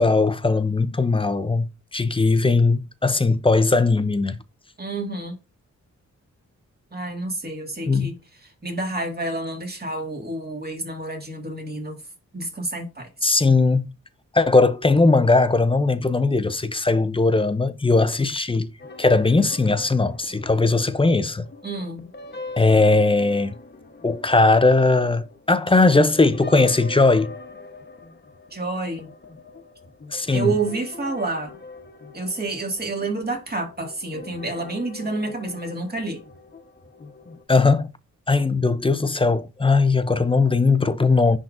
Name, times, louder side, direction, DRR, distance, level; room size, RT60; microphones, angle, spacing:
voice 1, 0.0-4.4 7.8-8.1 13.2-13.9 14.3-18.7 19.0-21.5 22.6-23.5 24.0-27.3 30.1-30.5 37.5-37.9 38.3-41.4, left 3 dB, 15° left, 0.6 m, -19 dB
voice 2, 4.8-5.4 6.9-8.2 8.6-12.0 12.3-13.1 21.6-22.1 28.5-29.1 30.3-31.5 32.1-36.2, right 2 dB, 30° right, 2.1 m, -29 dB
sound 1, 18.8-37.4, left 3 dB, 35° left, 1.1 m, -43 dB
10.5 x 3.7 x 2.6 m
cardioid pair, 90°, 31 cm